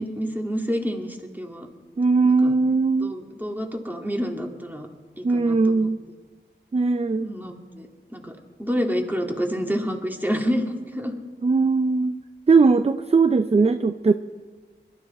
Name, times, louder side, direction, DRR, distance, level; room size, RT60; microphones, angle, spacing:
voice 1, 0.0-1.7 2.2-2.5 3.0-4.9 5.2-5.9 7.2-8.3 8.6-11.1, equal, 10° right, 2 dB, 2.2 m, -28 dB
voice 2, 2.0-3.1 5.2-6.0 6.7-7.3 11.4-12.1 12.5-14.1, right 4 dB, 35° right, 10 dB, 0.5 m, -19 dB
21.5 x 12.5 x 4.3 m, 1.4 s
wide cardioid pair, 55°, 19 cm